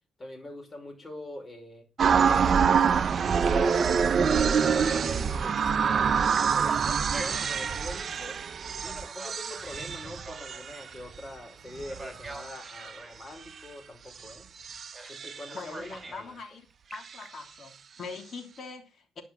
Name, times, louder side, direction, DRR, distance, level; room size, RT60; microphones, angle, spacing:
voice 1, 0.2-1.8 2.1-3.9 4.3-5.0 5.3-8.4 8.8-14.5 15.1-16.4, left 1 dB, 25° left, 5.2 m, -43 dB
sound 1, 2.0-11.2 11.7-13.0 14.3-14.4 14.6-15.6, right 6 dB, 50° right, 0.7 m, -26 dB
Telephone, 3.2-5.5 6.0-7.8 8.8-11.0 11.9-13.2 14.9-15.2 15.5-16.3 16.7-17.3, right 1 dB, 10° right, 3.0 m, -44 dB
voice 2, 15.5-16.7 16.9-19.2, left 4 dB, 50° left, 3.2 m, -42 dB
11.0 x 5.8 x 8.1 m
cardioid pair, 90°, 0 cm